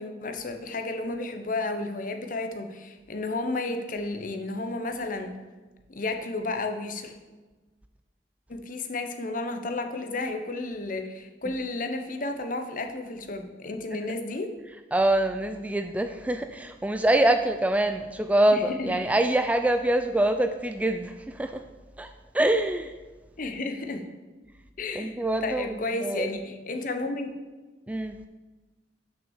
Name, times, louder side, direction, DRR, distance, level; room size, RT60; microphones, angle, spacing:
voice 1, 0.0-5.3 5.9-7.1 8.5-14.5 18.5-18.9 23.4-24.0 24.8-27.3, left 2 dB, 50° left, 6 dB, 0.9 m, -32 dB
voice 2, 14.9-21.6 22.0-22.9 25.0-26.3 27.9-28.2, right 1 dB, 10° right, 8 dB, 0.3 m, -25 dB
6.3 x 5.9 x 7.2 m, 1.2 s
head